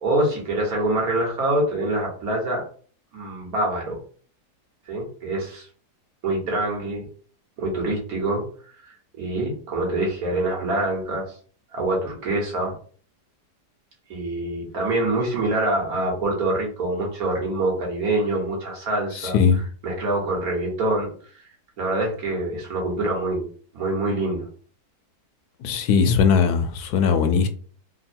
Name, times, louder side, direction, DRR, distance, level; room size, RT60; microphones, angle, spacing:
voice 1, 0.0-2.7 3.1-4.0 4.9-5.7 6.2-7.0 7.6-8.4 8.8-11.3 11.7-12.7 14.1-19.4 19.8-21.1 21.8-23.5 23.7-24.5, right 2 dB, 65° right, 1.7 m, -25 dB
voice 2, 19.2-19.6 25.6-27.5, left 6 dB, 75° left, 1.1 m, -19 dB
3.7 x 2.2 x 4.3 m
omnidirectional pair, 1.7 m